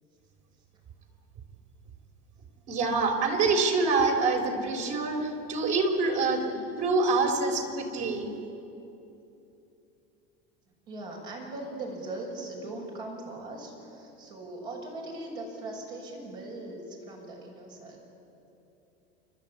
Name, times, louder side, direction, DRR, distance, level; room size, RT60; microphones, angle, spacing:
voice 1, 2.7-6.4 6.8-8.3, right 3 dB, 60° right, 2 dB, 4.1 m, -26 dB
voice 2, 10.9-18.0, right 2 dB, 85° right, -2 dB, 6.7 m, -40 dB
29.5 x 12.5 x 8.6 m, 2.9 s
supercardioid pair, 95°, 31 cm